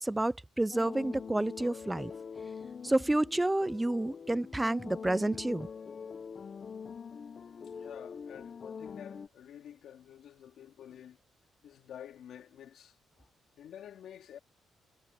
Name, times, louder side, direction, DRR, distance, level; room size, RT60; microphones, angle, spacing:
voice 1, 0.0-2.1 2.8-5.7, right 1 dB, 10° right, 0.4 m, -29 dB
sound 1, 0.7-9.3, left 6 dB, 45° left, 0.6 m, -44 dB
voice 2, 7.6-11.2 11.6-13.3 13.6-14.4, left 10 dB, 70° left, 2.3 m, -50 dB
cardioid pair, 90°, 0 cm